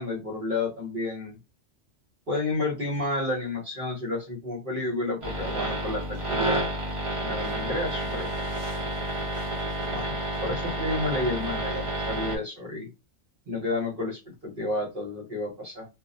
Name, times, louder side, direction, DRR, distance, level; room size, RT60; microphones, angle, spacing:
voice 1, 0.0-1.4 2.3-6.7 7.2-8.3 9.9-10.1 10.4-12.9 13.5-15.9, left 2 dB, 50° right, -3 dB, 1.0 m, -31 dB
sound 1, 5.2-12.4, right 1 dB, 35° right, 0.6 m, -30 dB
2.4 x 2.0 x 2.6 m, 0.25 s
omnidirectional pair, 1.2 m